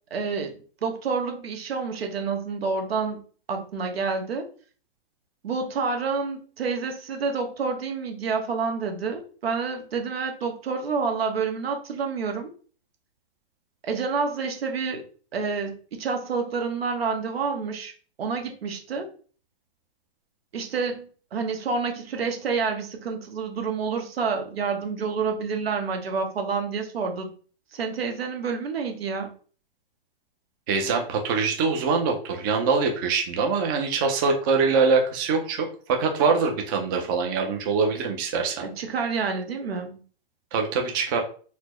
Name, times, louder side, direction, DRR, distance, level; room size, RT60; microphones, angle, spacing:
voice 1, 0.1-0.5 0.8-3.2 3.5-4.5 5.4-12.5 13.8-15.0 15.3-17.9 18.2-19.1 20.5-27.3 27.7-29.3 38.6-40.0, right 5 dB, 80° right, 4 dB, 0.9 m, -28 dB
voice 2, 30.7-38.7 40.5-41.2, right 4 dB, 25° right, 3 dB, 0.4 m, -24 dB
4.2 x 2.0 x 2.9 m, 0.41 s
hypercardioid pair, 140°, 30 cm